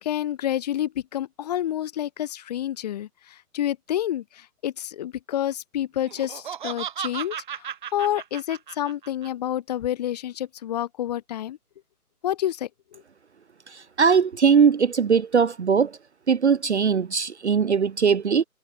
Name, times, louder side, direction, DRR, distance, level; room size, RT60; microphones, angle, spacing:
voice 1, 0.0-3.1 3.5-4.2 4.6-7.3 7.9-11.6 12.2-12.7, left 11 dB, 25° left, 2.7 m, -28 dB
Laughter, 6.0-9.3, right 9 dB, 30° right, 2.1 m, -35 dB
voice 2, 14.0-15.9 16.3-18.4, right 6 dB, 45° right, 0.8 m, -20 dB
figure-of-eight pair, 155°, 46 cm